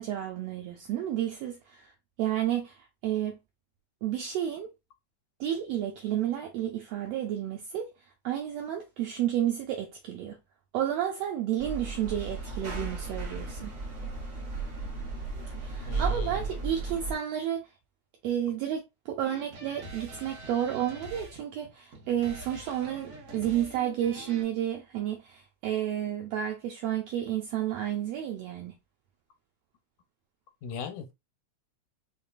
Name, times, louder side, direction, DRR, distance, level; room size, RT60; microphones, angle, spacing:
voice 1, 0.0-1.9 2.2-3.4 4.0-4.7 5.4-7.9 8.2-10.4 10.7-13.7 15.6-17.7 18.2-28.8, right 11 dB, 80° right, 1.5 m, -31 dB
sound 1, 11.6-17.2, right 3 dB, 35° right, 1.2 m, -35 dB
voice 2, 15.8-16.4 30.6-31.1, left 6 dB, 85° left, 2.0 m, -39 dB
sound 2, 19.2-24.4, right 2 dB, 60° right, 2.3 m, -45 dB
5.3 x 2.2 x 2.3 m
omnidirectional pair, 3.3 m